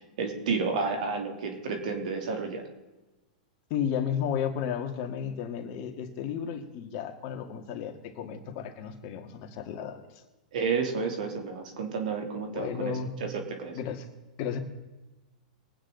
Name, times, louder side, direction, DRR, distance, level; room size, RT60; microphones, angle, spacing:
voice 1, 0.0-2.6 10.5-13.8, right 5 dB, 70° right, 3 dB, 3.0 m, -31 dB
voice 2, 3.7-10.2 12.5-13.1 13.7-14.1 14.4-14.6, left 8 dB, 50° left, 5 dB, 1.9 m, -33 dB
22.5 x 9.1 x 4.0 m, 1.1 s
hypercardioid pair, 120°, 4 cm